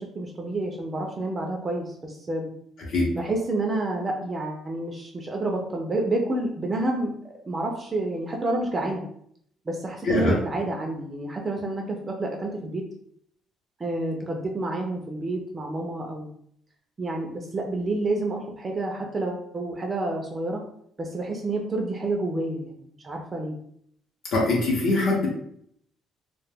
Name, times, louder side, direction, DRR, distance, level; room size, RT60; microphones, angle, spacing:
voice 1, 0.0-2.5 3.2-7.1 7.5-9.0 9.7-12.8 13.8-16.3 17.0-20.6 21.0-23.5, right 2 dB, 20° right, 1 dB, 0.3 m, -29 dB
voice 2, 10.0-10.4 24.3-25.3, left 2 dB, 65° left, -3 dB, 0.6 m, -22 dB
2.1 x 2.1 x 3.2 m, 0.68 s
cardioid pair, 155°, 0 cm